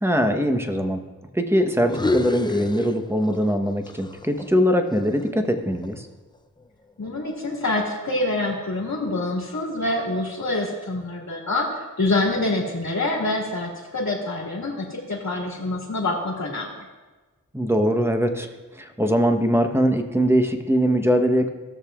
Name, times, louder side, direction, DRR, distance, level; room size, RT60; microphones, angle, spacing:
voice 1, 0.0-1.0 1.3-6.1 17.5-18.5 18.8-21.5, equal, 5° right, 5 dB, 1.1 m, -21 dB
sound 1, 1.8-3.6 3.9-6.1, left 2 dB, 15° left, 0.6 m, -29 dB
voice 2, 7.0-16.7, left 2 dB, 60° left, -4 dB, 2.2 m, -26 dB
18.0 x 6.7 x 2.5 m, 1.3 s
cardioid pair, 45°, 35 cm